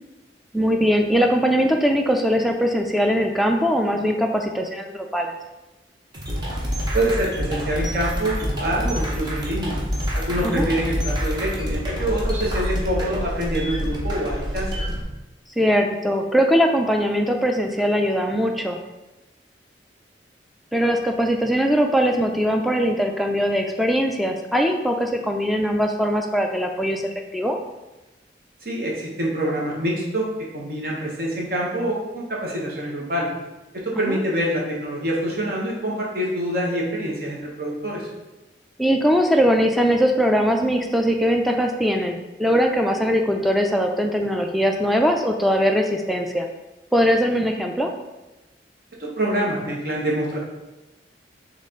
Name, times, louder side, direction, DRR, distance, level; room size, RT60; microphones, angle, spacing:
voice 1, 0.5-5.3 10.4-10.7 15.6-18.8 20.7-27.0 27.3-27.6 34.1-34.2 38.8-46.5 46.9-47.9, equal, ahead, 2 dB, 0.3 m, -21 dB
sound 1, 6.1-15.0, equal, 25° right, 0.8 m, -27 dB
voice 2, 6.9-9.7 10.1-14.7 28.6-30.2 30.5-33.3 33.7-38.0 49.0-50.4, right 1 dB, 55° right, -3 dB, 1.1 m, -25 dB
4.2 x 3.1 x 3.7 m, 1.0 s
head